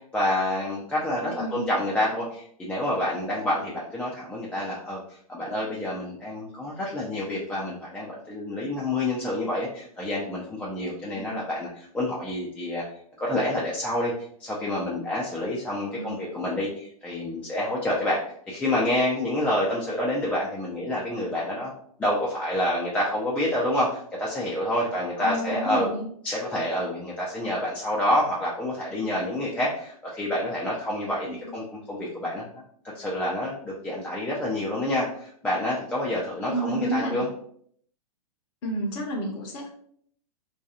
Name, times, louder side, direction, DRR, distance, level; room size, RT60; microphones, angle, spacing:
voice 1, 0.1-12.8 13.2-14.1 14.4-21.7 22.0-25.9 26.2-32.5 32.9-37.3, left 1 dB, 5° left, -6 dB, 0.4 m, -28 dB
voice 2, 1.3-1.7 11.1-11.4 15.9-16.1 25.2-26.0 31.3-31.6 36.4-37.2 38.6-39.7, right 1 dB, 50° left, -1 dB, 0.6 m, -31 dB
2.4 x 2.2 x 2.7 m, 0.63 s
hypercardioid pair, 110°, 20 cm